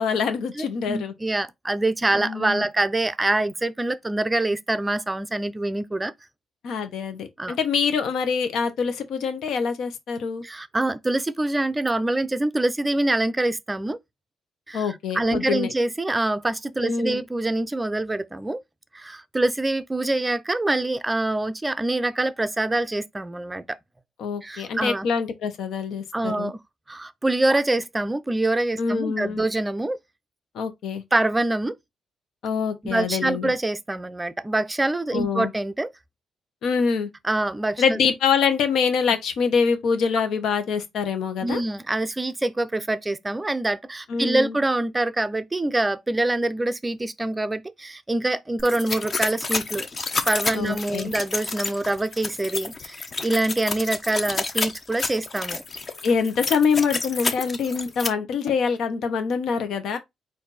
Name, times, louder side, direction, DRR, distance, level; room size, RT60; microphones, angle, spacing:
voice 1, 0.0-1.1 2.1-2.6 6.6-10.4 14.7-15.7 16.8-17.2 24.2-26.5 28.8-29.4 30.5-31.0 32.4-33.5 35.1-35.5 36.6-37.1 37.8-41.6 44.1-44.5 50.5-51.1 56.0-60.0, left 6 dB, 75° left, 1.0 m, -25 dB
voice 2, 0.5-6.1 7.4-7.6 10.4-14.0 14.7-18.6 18.9-23.8 24.4-25.1 26.1-26.6 26.9-30.0 31.1-31.8 32.8-35.9 37.2-38.0 41.4-49.9 50.3-55.6, right 2 dB, 15° right, 0.5 m, -25 dB
sound 1, 48.6-58.1, left 4 dB, 35° left, 0.8 m, -29 dB
4.3 x 2.6 x 4.1 m
cardioid pair, 105°, 0 cm